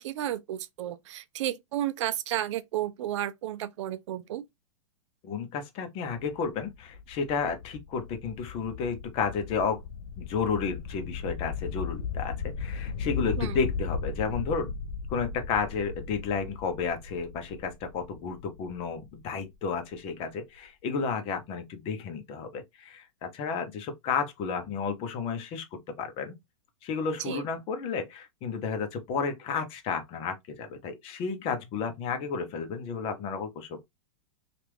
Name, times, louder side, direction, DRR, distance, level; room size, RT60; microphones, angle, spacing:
voice 1, 0.0-4.4 13.4-13.6 27.2-27.4, right 12 dB, 60° right, 0.4 m, -32 dB
voice 2, 5.2-9.8 10.2-14.7 15.1-25.7 26.0-26.3 26.8-33.8, left 5 dB, 35° left, 0.8 m, -32 dB
sound 1, 6.3-19.8, left 5 dB, 85° left, 0.4 m, -37 dB
2.9 x 2.5 x 3.3 m
hypercardioid pair, 130°, 17 cm